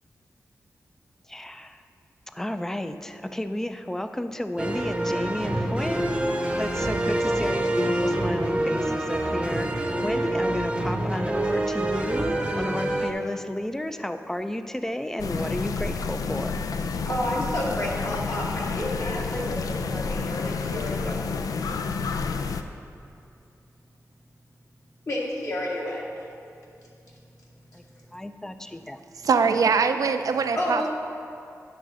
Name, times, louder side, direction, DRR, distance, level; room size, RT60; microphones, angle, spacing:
voice 1, 1.3-1.8 2.3-16.6 27.7-27.8 28.1-29.0, left 1 dB, 5° left, 9 dB, 0.4 m, -32 dB
sound 1, 4.6-13.1, right 1 dB, 20° right, 0.8 m, -26 dB
sound 2, 15.2-22.6, left 4 dB, 85° left, 0.4 m, -30 dB
voice 2, 17.0-21.3 25.1-26.1 30.5-30.9, left 1 dB, 60° left, -5 dB, 1.8 m, -30 dB
voice 3, 29.2-30.9, right 5 dB, 75° right, 8 dB, 0.4 m, -22 dB
9.5 x 3.7 x 6.8 m, 2.5 s
wide cardioid pair, 75°, 6 cm